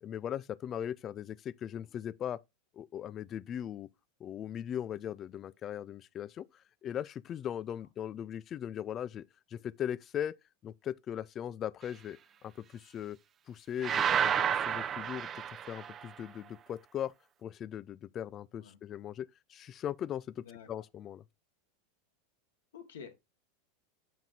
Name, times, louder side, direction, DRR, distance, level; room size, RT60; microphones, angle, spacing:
voice 1, 0.0-2.4 2.7-3.9 4.2-6.5 6.8-10.4 10.6-13.2 13.5-17.1 17.4-21.2, left 10 dB, 35° left, 0.4 m, -39 dB
sound 1, 13.8-16.1, right 8 dB, 30° right, 0.5 m, -30 dB
voice 2, 22.7-23.1, left 7 dB, 90° left, 1.8 m, -48 dB
7.4 x 5.9 x 2.8 m
supercardioid pair, 120°, 0 cm